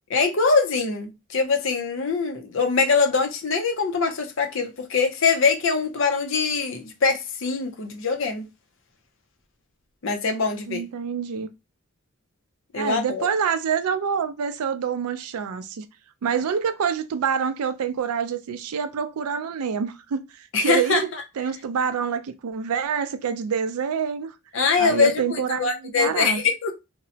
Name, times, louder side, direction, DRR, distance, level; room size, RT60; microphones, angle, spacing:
voice 1, 0.1-8.5 10.0-10.8 12.7-13.3 20.5-21.0 24.5-26.7, left 4 dB, 60° left, 0.5 m, -23 dB
voice 2, 10.7-11.5 12.7-15.9 16.2-21.1 21.4-24.3 24.8-26.4, right 7 dB, 90° right, 0.4 m, -26 dB
2.9 x 2.0 x 2.7 m
head